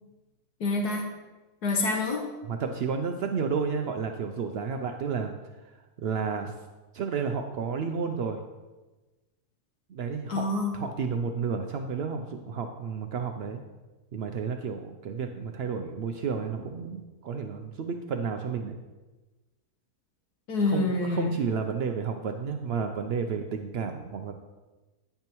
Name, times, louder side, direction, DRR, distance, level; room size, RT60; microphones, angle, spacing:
voice 1, 0.6-1.0 1.6-2.2 10.3-10.7 20.5-21.3, left 3 dB, 80° left, 1 dB, 1.6 m, -26 dB
voice 2, 2.5-5.3 6.0-6.5 6.9-8.4 9.9-10.5 10.7-13.6 14.1-18.8 20.6-24.3, right 5 dB, 80° right, 5 dB, 0.5 m, -31 dB
9.8 x 8.8 x 3.0 m, 1.2 s
omnidirectional pair, 1.7 m